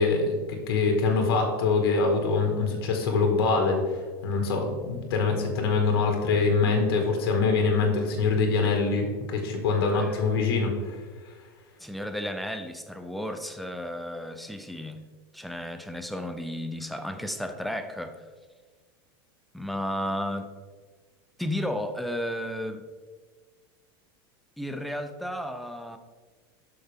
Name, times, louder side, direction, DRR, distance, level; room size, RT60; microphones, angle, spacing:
voice 1, 0.0-11.0, left 4 dB, 85° left, 3 dB, 1.8 m, -24 dB
voice 2, 9.9-10.2 11.8-15.0 15.3-18.2 19.5-20.5 21.4-22.8 24.6-26.0, equal, ahead, 7 dB, 0.4 m, -33 dB
11.5 x 5.8 x 3.6 m, 1.5 s
supercardioid pair, 175°, 12 cm